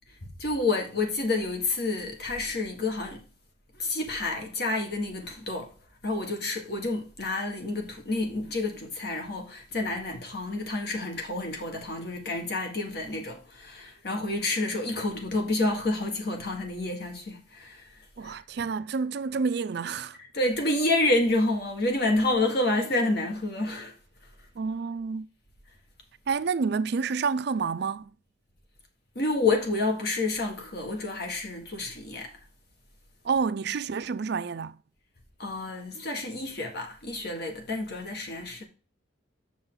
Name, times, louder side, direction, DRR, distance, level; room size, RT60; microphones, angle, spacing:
voice 1, 0.2-3.3 3.7-5.7 6.0-17.9 18.2-18.4 20.3-23.9 29.1-32.3 35.4-38.6, left 2 dB, 55° left, 1.7 m, -29 dB
voice 2, 18.2-20.2 24.6-25.3 26.3-28.1 33.2-34.8, right 5 dB, 55° right, 0.4 m, -29 dB
7.1 x 6.4 x 3.9 m
head